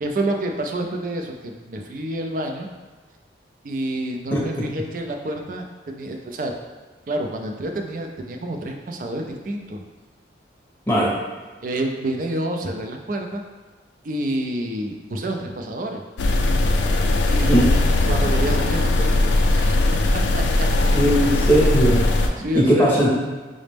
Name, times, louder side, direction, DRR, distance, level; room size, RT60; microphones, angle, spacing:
voice 1, 0.0-2.7 3.6-6.5 7.1-9.8 11.6-13.4 14.0-16.0 17.3-17.5 18.1-19.8 20.1-20.7 22.4-23.1, right 1 dB, 45° right, 3 dB, 0.4 m, -28 dB
sound 1, 16.2-22.3, left 2 dB, 75° left, 0.4 m, -19 dB
voice 2, 20.9-22.1 22.5-23.1, right 1 dB, 10° left, -6 dB, 0.7 m, -18 dB
5.0 x 2.1 x 3.3 m, 1.3 s
head